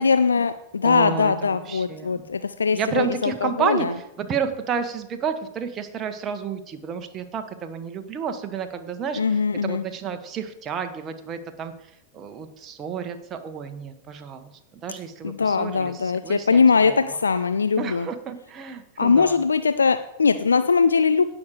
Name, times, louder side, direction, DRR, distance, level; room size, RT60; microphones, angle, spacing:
voice 1, 0.0-3.9 9.2-9.8 15.2-18.1 19.0-21.2, left 5 dB, 75° left, 11 dB, 0.4 m, -21 dB
voice 2, 0.8-2.2 2.7-11.7 12.1-14.5 14.8-17.2 17.8-19.4, right 6 dB, 30° right, 7 dB, 1.3 m, -31 dB
17.0 x 6.4 x 4.9 m, 0.87 s
figure-of-eight pair, 90°, 0 cm